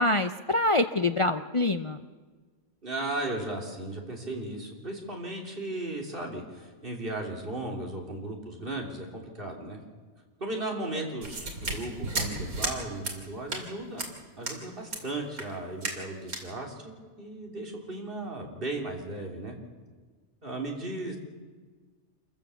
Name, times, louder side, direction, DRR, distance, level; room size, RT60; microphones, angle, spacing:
voice 1, 0.0-2.0, left 2 dB, 55° left, 7 dB, 0.3 m, -25 dB
voice 2, 2.8-9.8 10.4-14.0 14.4-19.5 20.4-21.2, right 2 dB, 35° right, 0 dB, 3.5 m, -36 dB
sound 1, 11.2-12.8 13.0-13.2 13.5-13.7 14.0-14.1 14.4-14.6 14.9-15.0 15.4-15.5 15.8-16.0 16.3-16.5, right 2 dB, 75° right, 3.3 m, -33 dB
27.5 x 15.0 x 7.0 m, 1.4 s
omnidirectional pair, 1.5 m